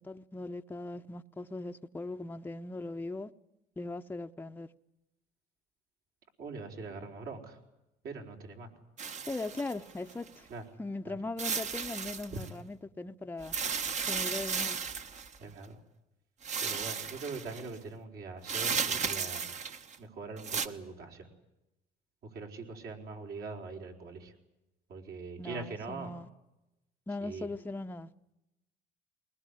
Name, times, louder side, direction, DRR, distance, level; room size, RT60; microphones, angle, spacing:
voice 1, 0.0-3.3 3.8-4.7 9.3-10.5 10.8-13.5 14.1-14.8 25.4-26.3 27.1-28.1, left 2 dB, 10° left, 0.8 m, -39 dB
voice 2, 6.4-7.6 8.0-8.7 10.5-10.6 11.0-11.2 12.3-12.4 15.4-15.8 16.6-19.5 20.0-21.3 22.2-24.3 24.9-26.1 27.2-27.5, right 4 dB, 65° right, 4.8 m, -42 dB
sound 1, 9.0-10.3 11.4-12.5 13.4-15.4 16.4-17.6 18.4-20.0 20.4-20.7, right 6 dB, 45° right, 1.4 m, -34 dB
21.5 x 20.0 x 9.9 m
cardioid pair, 110°, 17 cm